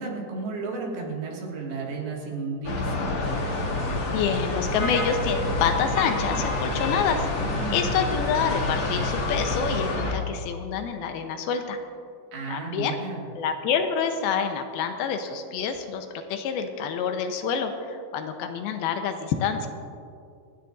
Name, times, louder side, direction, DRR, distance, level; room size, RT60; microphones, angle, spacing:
voice 1, 0.0-3.1 7.4-7.9 12.3-13.2, right 4 dB, 85° right, -2 dB, 4.0 m, -33 dB
sound 1, 2.7-10.1, left 2 dB, 55° left, 2.6 m, -27 dB
sound 2, 3.2-10.0, left 1 dB, 20° left, 2.9 m, -44 dB
voice 2, 4.1-7.3 7.7-11.8 12.5-13.0 13.3-19.7, left 6 dB, 90° left, 6 dB, 2.7 m, -27 dB
27.0 x 9.5 x 2.6 m, 2.4 s
omnidirectional pair, 4.3 m